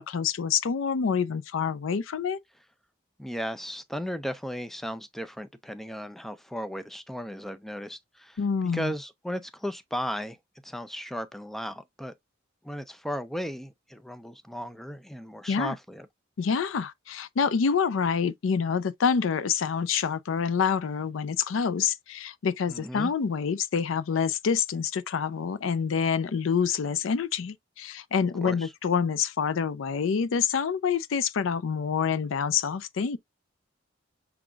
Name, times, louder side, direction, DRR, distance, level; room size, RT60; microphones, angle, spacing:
voice 1, 0.0-2.4 8.4-8.9 15.5-15.8 16.4-33.2, left 6 dB, 80° left, 0.4 m, -27 dB
voice 2, 3.2-8.4 8.7-10.4 10.6-12.1 12.6-16.1 22.7-23.1 28.4-28.7, equal, ahead, 0.4 m, -35 dB
5.8 x 3.8 x 2.3 m
head